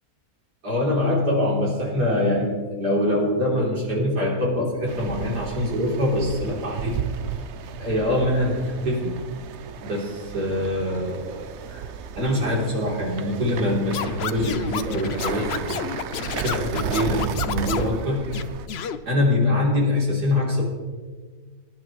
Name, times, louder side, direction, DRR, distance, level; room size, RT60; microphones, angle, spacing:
voice 1, 0.6-7.0 7.8-9.1 9.8-11.8 12.2-15.9 16.4-18.2 19.1-20.6, left 1 dB, 80° right, -4 dB, 4.0 m, -24 dB
sound 1, 4.9-18.7, right 8 dB, 60° right, 0.7 m, -34 dB
Scratching (performance technique), 13.9-17.9 18.3-19.0, left 8 dB, 60° left, 0.7 m, -30 dB
23.0 x 11.0 x 3.2 m, 1.5 s
omnidirectional pair, 1.7 m